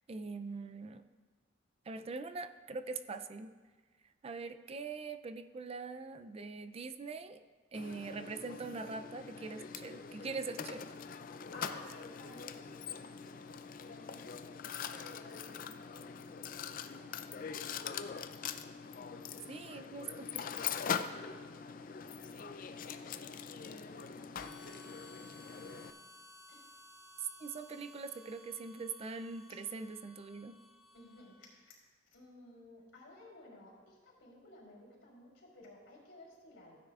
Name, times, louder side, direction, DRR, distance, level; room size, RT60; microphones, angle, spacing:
voice 1, 0.1-1.1 1.9-3.6 4.2-7.4 7.7-10.8 19.5-20.5 27.4-30.6, right 4 dB, 30° right, 9 dB, 0.4 m, -43 dB
Mechanisms, 7.7-25.9, left 7 dB, 45° left, 0.4 m, -43 dB
voice 2, 11.5-17.6 17.9-18.5 19.0-19.2 21.1-24.7 25.6-26.0 26.5-26.7 30.9-31.8 32.1-36.8, left 2 dB, 90° left, -4 dB, 3.5 m, -57 dB
Harmonica, 24.3-31.6, left 1 dB, ahead, 2.4 m, -58 dB
15.5 x 9.8 x 2.4 m, 1.4 s
head